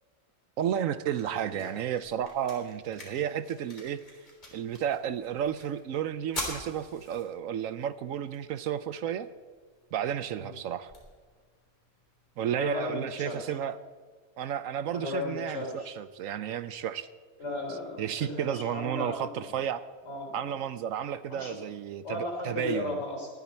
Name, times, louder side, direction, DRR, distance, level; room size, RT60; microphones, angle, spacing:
sound 1, 0.6-12.6, left 1 dB, 30° left, 3.5 m, -46 dB
voice 1, 0.6-4.0 4.5-9.3 9.9-10.9 12.4-13.8 14.4-17.1 18.0-19.8 20.3-23.0, right 9 dB, 75° right, 14 dB, 1.0 m, -32 dB
voice 2, 12.6-13.4 14.9-15.9 17.4-19.6 20.0-20.4 21.3-21.6 22.0-23.3, left 2 dB, 50° left, 1 dB, 3.7 m, -35 dB
18.5 x 12.0 x 4.4 m, 1.5 s
omnidirectional pair, 1.5 m